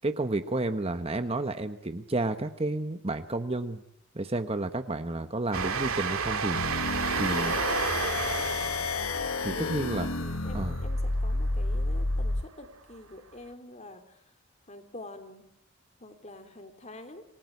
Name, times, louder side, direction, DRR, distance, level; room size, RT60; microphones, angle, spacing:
voice 1, 0.0-3.8 4.1-6.9 7.2-7.5 9.4-10.1 10.5-10.8, right 2 dB, 30° right, 9 dB, 1.1 m, -31 dB
Train, 5.5-11.7, right 5 dB, 90° right, 2.2 m, -32 dB
sound 1, 6.5-12.5, left 2 dB, 85° left, 1.1 m, -30 dB
voice 2, 7.3-8.9 9.5-14.3 14.7-15.5 16.0-17.2, left 1 dB, 30° left, 8 dB, 3.2 m, -47 dB
28.0 x 19.5 x 9.6 m, 0.74 s
head